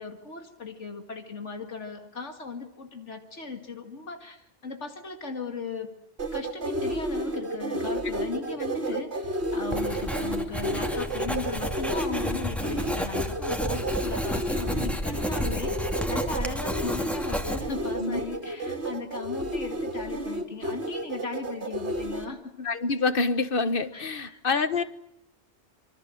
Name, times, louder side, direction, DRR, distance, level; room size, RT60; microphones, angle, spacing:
voice 1, 0.0-5.9 6.3-22.7 23.9-24.4, left 4 dB, 75° left, 5 dB, 2.5 m, -37 dB
sound 1, 6.2-22.2, right 1 dB, 65° right, 3.0 m, -31 dB
Writing, 9.7-17.9, equal, ahead, 2.5 m, -31 dB
voice 2, 22.6-24.8, left 4 dB, 50° left, 12 dB, 1.5 m, -26 dB
26.5 x 24.5 x 7.8 m, 0.76 s
omnidirectional pair, 1.2 m